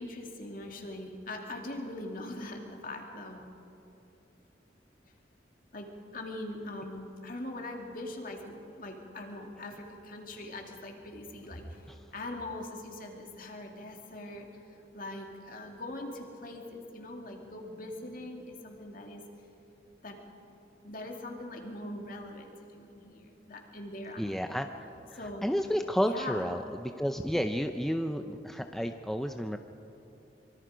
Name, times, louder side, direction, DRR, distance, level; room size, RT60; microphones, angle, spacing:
voice 1, 0.0-3.4 5.7-19.2 20.0-20.2 20.8-24.4 25.1-25.6 26.0-26.6, left 1 dB, 50° left, 2 dB, 2.6 m, -42 dB
voice 2, 24.2-24.9 25.4-29.6, equal, ahead, 6 dB, 0.5 m, -31 dB
25.0 x 23.0 x 5.1 m, 3.0 s
head